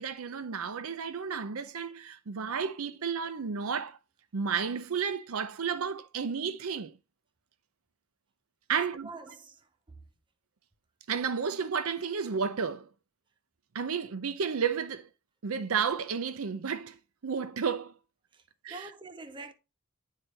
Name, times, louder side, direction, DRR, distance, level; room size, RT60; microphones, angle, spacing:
voice 1, 0.0-4.0 4.3-6.9 8.7-9.1 11.1-12.9 13.7-15.1 15.4-17.9 18.6-18.9, right 6 dB, 70° right, 0.6 m, -32 dB
voice 2, 8.7-9.6 18.3-18.4 18.7-19.5, right 3 dB, 20° right, 0.6 m, -45 dB
9.2 x 3.3 x 3.9 m
head